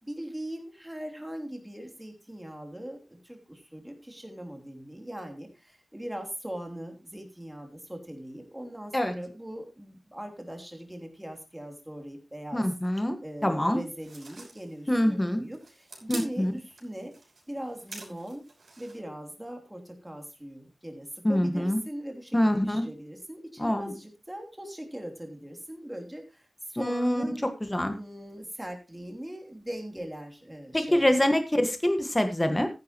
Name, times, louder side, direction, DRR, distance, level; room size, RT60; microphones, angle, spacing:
voice 1, 0.0-12.7 12.9-17.1 17.5-18.4 18.8-27.4 27.9-31.3, right 1 dB, 10° right, 3 dB, 3.2 m, -40 dB
voice 2, 12.5-13.8 14.9-15.4 16.1-16.5 21.2-21.8 22.3-22.8 23.6-23.9 26.8-27.2 27.6-28.0 30.7-32.7, left 1 dB, 15° left, 7 dB, 1.6 m, -25 dB
sound 1, 14.0-19.0, right 3 dB, 75° right, 5.8 m, -47 dB
14.5 x 10.5 x 3.0 m, 0.26 s
wide cardioid pair, 110°, 0 cm